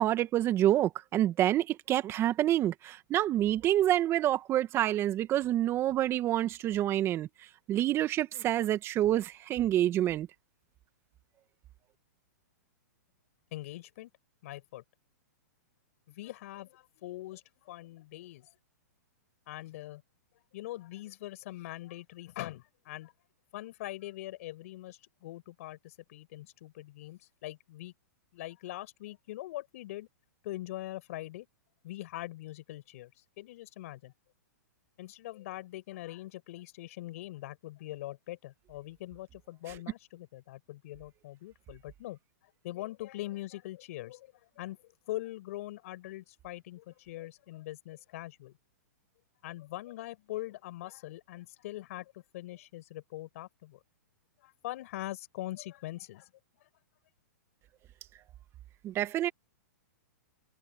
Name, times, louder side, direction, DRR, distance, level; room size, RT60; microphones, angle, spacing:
voice 1, 0.0-7.3 7.7-10.3 58.8-59.3, right 13 dB, 25° right, 1.7 m, -27 dB
voice 2, 13.5-14.1 14.4-14.8 16.1-18.5 19.5-20.0 20.5-23.1 23.5-27.9 28.3-30.1 30.4-31.5 31.8-34.1 35.0-48.5 49.4-53.8 54.4-56.3 56.6-56.7, left 16 dB, 55° left, 5.4 m, -42 dB
hypercardioid pair, 130°, 9 cm